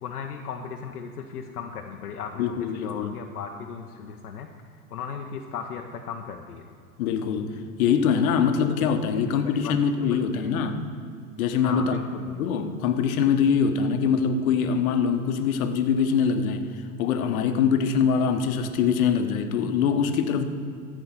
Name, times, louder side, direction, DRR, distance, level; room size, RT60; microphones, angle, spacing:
voice 1, 0.0-4.5 4.9-6.7 9.1-10.6 11.6-12.4, left 6 dB, 85° left, 3 dB, 0.8 m, -37 dB
voice 2, 2.4-3.1 7.0-10.8 11.4-12.0 12.4-16.7 17.0-20.4, left 6 dB, 70° left, 7 dB, 1.2 m, -23 dB
14.0 x 4.8 x 7.6 m, 2.3 s
hypercardioid pair, 90°, 44 cm